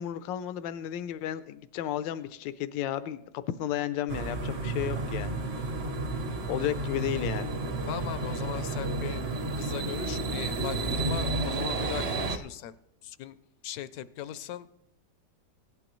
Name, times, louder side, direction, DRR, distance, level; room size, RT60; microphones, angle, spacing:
voice 1, 0.0-5.3 6.5-7.5, left 11 dB, 90° left, 13 dB, 1.3 m, -33 dB
sound 1, 4.1-12.4, right 2 dB, 45° right, 0.9 m, -31 dB
voice 2, 7.9-9.2 9.6-12.7 13.0-13.4 13.6-14.7, left 11 dB, 70° left, 14 dB, 0.9 m, -38 dB
17.5 x 11.5 x 3.0 m, 0.81 s
omnidirectional pair, 2.0 m